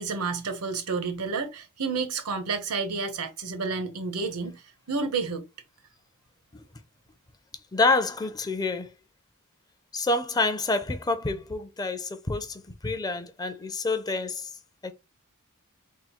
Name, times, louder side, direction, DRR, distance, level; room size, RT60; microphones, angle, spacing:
voice 1, 0.0-5.5, right 4 dB, 85° right, 1.0 m, -30 dB
voice 2, 7.7-8.9 9.9-14.5 14.8-14.9, left 3 dB, 20° left, 0.4 m, -27 dB
3.7 x 2.2 x 4.3 m
head